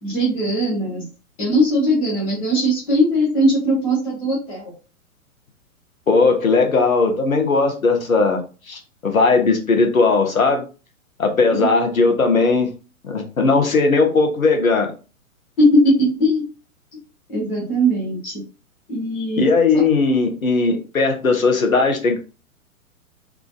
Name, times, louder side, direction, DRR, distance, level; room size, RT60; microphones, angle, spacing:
voice 1, 0.0-1.1 1.4-4.7 11.5-11.7 15.6-16.4 17.3-18.3 18.9-19.5 19.7-19.8, equal, 5° left, -7 dB, 0.4 m, -19 dB
voice 2, 6.1-8.4 8.7-10.6 11.2-12.7 13.0-14.9 19.4-22.2, left 3 dB, 70° left, 4 dB, 1.2 m, -18 dB
3.6 x 2.5 x 3.8 m, 0.34 s
figure-of-eight pair, 115°, 43 cm